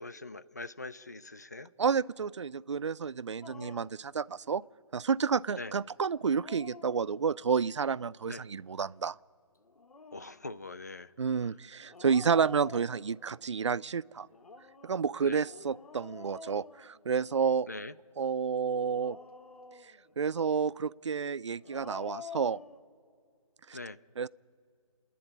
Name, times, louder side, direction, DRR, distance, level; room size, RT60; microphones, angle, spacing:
voice 1, 0.0-1.7 3.6-3.7 5.6-5.7 8.3-8.5 10.1-11.1 15.2-15.4 17.7-17.9 23.7-24.0, left 2 dB, 30° left, 15 dB, 0.4 m, -42 dB
voice 2, 1.8-4.6 4.9-9.2 11.2-14.3 14.8-17.7 18.2-19.2 20.2-22.6 23.7-23.8 24.2-24.3, right 6 dB, 55° right, 21 dB, 0.4 m, -30 dB
Dog, 3.4-4.0 6.1-7.5 9.6-10.4 11.9-13.4 14.3-17.5 18.7-20.1 21.5-22.8, left 3 dB, 85° left, 1.3 m, -48 dB
27.0 x 10.0 x 9.8 m, 2.3 s
hypercardioid pair, 170°, 18 cm